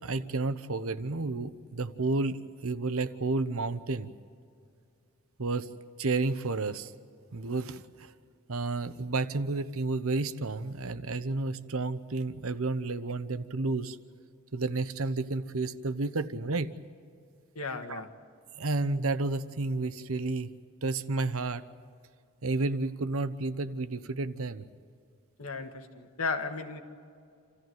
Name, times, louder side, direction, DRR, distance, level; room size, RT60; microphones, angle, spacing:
voice 1, 0.0-4.1 5.4-5.7 6.0-6.9 7.3-8.1 8.5-14.0 14.5-16.7 17.9-18.0 18.6-20.5 20.8-21.6 22.4-24.7, right 3 dB, 75° right, 13 dB, 0.9 m, -31 dB
voice 2, 17.6-18.1 25.4-26.8, left 4 dB, 85° left, 6 dB, 1.9 m, -35 dB
28.0 x 14.5 x 9.4 m, 2.3 s
head